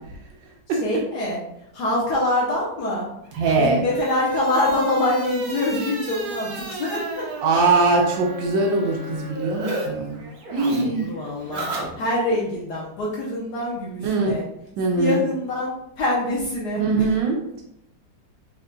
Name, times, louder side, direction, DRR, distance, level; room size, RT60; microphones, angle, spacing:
voice 1, 0.8-1.4 1.7-3.1 3.6-7.2 10.8-11.7 12.0-14.4 14.9-16.8, left 1 dB, 65° left, -4 dB, 1.3 m, -25 dB
sound 1, 3.3-9.9 10.1-12.4, right 1 dB, 65° right, 1.3 m, -32 dB
voice 2, 3.4-3.8 7.4-10.2 10.5-11.1 14.0-14.4 14.8-15.2 16.8-17.6, right 3 dB, 85° right, 0 dB, 1.4 m, -21 dB
4.3 x 3.7 x 2.2 m, 0.79 s
omnidirectional pair, 2.0 m